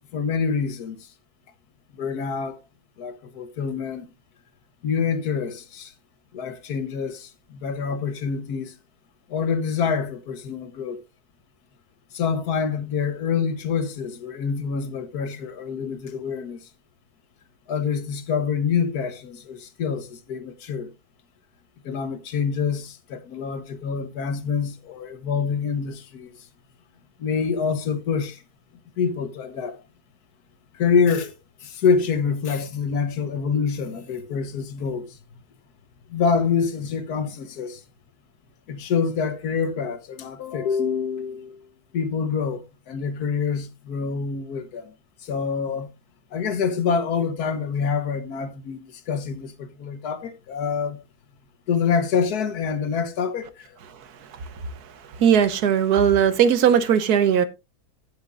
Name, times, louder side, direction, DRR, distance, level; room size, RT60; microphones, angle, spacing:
voice 1, 0.1-1.1 2.0-2.6 3.0-4.1 4.8-5.9 6.3-8.8 9.3-11.0 12.1-16.6 17.7-20.9 21.9-26.3 27.2-28.4 29.0-29.8 30.7-31.3 31.6-35.2 36.1-37.8 38.7-41.7 41.9-44.9 45.2-45.9 46.3-51.0 51.7-53.8, left 6 dB, 80° left, 1.6 m, -26 dB
voice 2, 55.2-57.5, right 8 dB, 80° right, 1.5 m, -18 dB
16.5 x 6.7 x 2.5 m
omnidirectional pair, 1.6 m